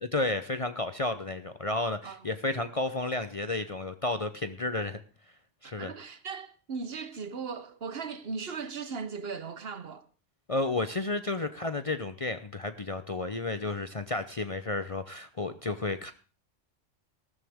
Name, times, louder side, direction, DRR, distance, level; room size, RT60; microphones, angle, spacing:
voice 1, 0.0-5.0 5.6-5.9 10.5-16.1, left 2 dB, 35° left, 0.7 m, -32 dB
voice 2, 5.6-10.1 11.4-11.5, right 5 dB, 55° right, 1.2 m, -38 dB
15.0 x 13.5 x 3.5 m
omnidirectional pair, 1.2 m